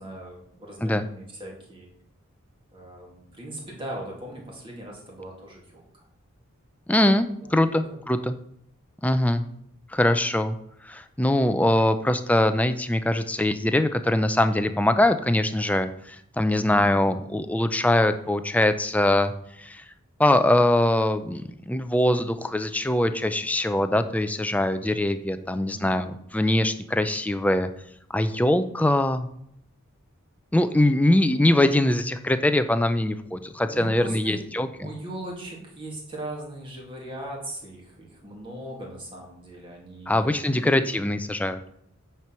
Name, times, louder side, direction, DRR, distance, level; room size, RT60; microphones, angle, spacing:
voice 1, 0.0-1.9 2.7-6.1 7.4-8.0 16.5-17.3 25.5-26.1 33.7-34.4 34.8-40.8, right 1 dB, 25° right, -2 dB, 2.4 m, -39 dB
voice 2, 6.9-8.3 9.0-9.4 9.9-10.6 10.8-19.3 19.6-19.8 20.2-27.7 28.1-29.3 30.5-34.9 40.1-41.6, left 1 dB, 5° left, 9 dB, 0.4 m, -22 dB
9.2 x 4.6 x 5.8 m, 0.73 s
head